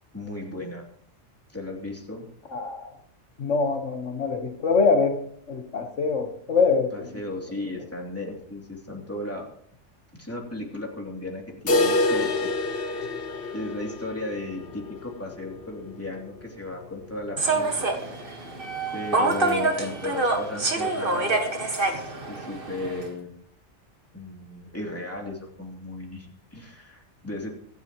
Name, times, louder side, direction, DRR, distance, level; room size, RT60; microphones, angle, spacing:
voice 1, 0.1-0.8 1.5-2.2 6.9-9.5 10.2-12.6 12.9-18.5 18.9-23.3 24.1-27.5, left 2 dB, 10° left, -1 dB, 2.9 m, -36 dB
voice 2, 2.5-2.9 3.4-5.2 5.5-7.1, left 4 dB, 85° left, 5 dB, 1.7 m, -24 dB
sound 1, 11.7-17.5 17.8-17.9 18.2-18.3 18.8-18.9 19.8-19.9, left 2 dB, 55° left, 1.3 m, -28 dB
Human voice / Subway metro underground, 17.4-23.1, right 3 dB, 50° right, 1.8 m, -26 dB
24.0 x 10.0 x 3.1 m, 0.64 s
omnidirectional pair, 1.2 m